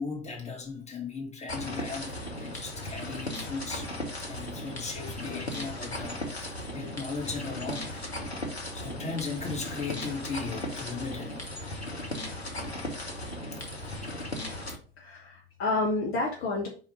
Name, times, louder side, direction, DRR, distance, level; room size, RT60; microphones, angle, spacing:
voice 1, 0.0-3.9 4.3-8.1 8.7-11.5 13.7-14.1, left 4 dB, 20° left, 2.2 m, -37 dB
sound 1, 1.5-14.8, left 1 dB, 90° left, 1.0 m, -37 dB
voice 2, 15.0-16.7, left 2 dB, 45° left, 1.4 m, -30 dB
4.8 x 4.3 x 5.3 m
figure-of-eight pair, 60°, 31 cm